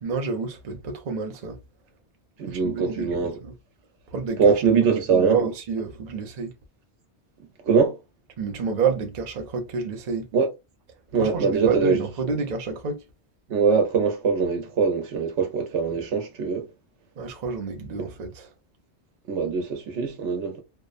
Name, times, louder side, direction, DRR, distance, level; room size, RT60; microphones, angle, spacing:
voice 1, 0.0-1.6 2.5-3.5 4.1-4.5 5.1-6.5 8.4-10.3 11.2-13.0 17.2-18.5, right 5 dB, 45° right, 0.6 m, -29 dB
voice 2, 2.4-3.4 4.4-5.4 7.7-8.0 10.3-10.5 11.1-12.0 13.5-16.7 19.3-20.6, right 5 dB, 85° right, 1.0 m, -22 dB
2.8 x 2.1 x 2.4 m
omnidirectional pair, 1.2 m